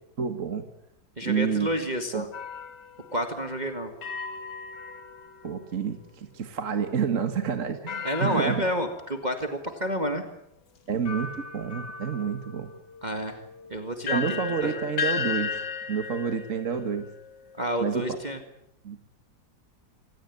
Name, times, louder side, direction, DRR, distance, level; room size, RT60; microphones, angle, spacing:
voice 1, 0.2-0.7 1.2-1.7 2.1-2.2 5.4-8.6 10.9-12.7 14.1-15.6 15.9-17.1 17.8-18.0 18.8-19.0, right 6 dB, 45° right, 7 dB, 1.9 m, -29 dB
voice 2, 1.2-2.3 3.1-3.9 8.0-10.2 13.0-13.4 13.7-14.9 17.6-18.4, equal, 25° right, 6 dB, 2.0 m, -29 dB
sound 1, 2.3-5.8 7.9-9.4 10.1-10.2 11.1-17.9, left 6 dB, 70° left, 2.2 m, -36 dB
26.5 x 18.0 x 9.5 m, 0.80 s
omnidirectional pair, 2.0 m